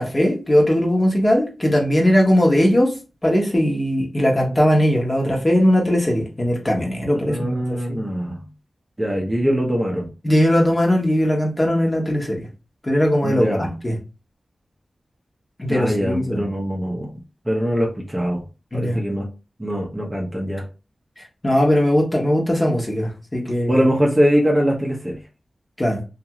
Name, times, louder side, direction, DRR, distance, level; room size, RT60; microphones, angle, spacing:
voice 1, 0.0-2.9 3.2-8.0 10.2-12.4 12.8-13.9 15.6-16.4 18.7-19.0 21.4-23.8 25.8-26.0, equal, 25° left, -1 dB, 1.0 m, -19 dB
voice 2, 7.1-8.5 9.0-10.1 13.2-13.7 15.7-18.5 18.7-19.3 19.6-20.6 23.7-25.2, equal, 15° right, -1 dB, 0.7 m, -22 dB
2.7 x 2.4 x 2.9 m, 0.31 s
wide cardioid pair, 95°, 0 cm